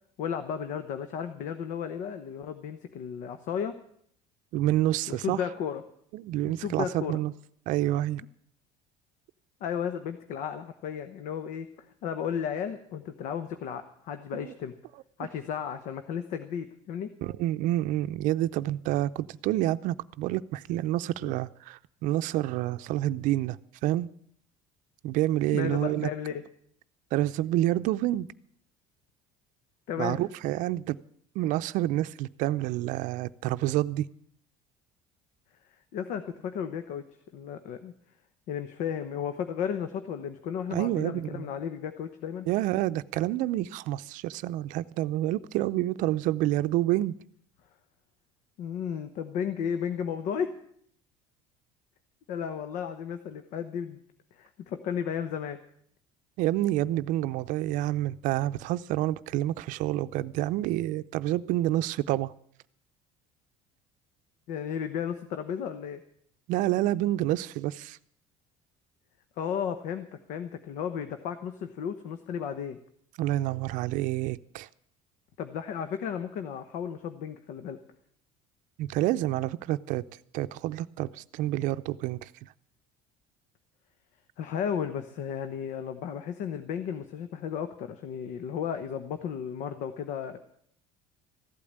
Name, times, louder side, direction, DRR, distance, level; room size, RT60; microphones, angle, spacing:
voice 1, 0.2-3.8 5.1-5.8 6.4-7.2 9.6-11.7 12.0-14.7 15.2-17.1 21.2-21.3 25.5-26.4 29.9-30.2 35.9-37.0 37.3-37.9 38.5-42.5 48.6-50.5 52.3-54.0 54.3-55.6 64.5-66.0 69.4-72.8 75.4-77.8 84.4-90.4, left 8 dB, 70° left, 1.0 m, -34 dB
voice 2, 4.5-5.4 6.1-7.3 7.7-8.2 14.3-14.5 17.2-23.6 23.8-24.1 25.0-26.1 27.1-28.3 30.0-31.0 31.4-34.1 40.7-41.5 42.5-47.1 56.4-62.3 66.5-68.0 73.2-74.7 78.8-80.0 80.3-82.3, right 15 dB, 70° right, 0.6 m, -28 dB
15.0 x 8.6 x 8.7 m
cardioid pair, 120°, 14 cm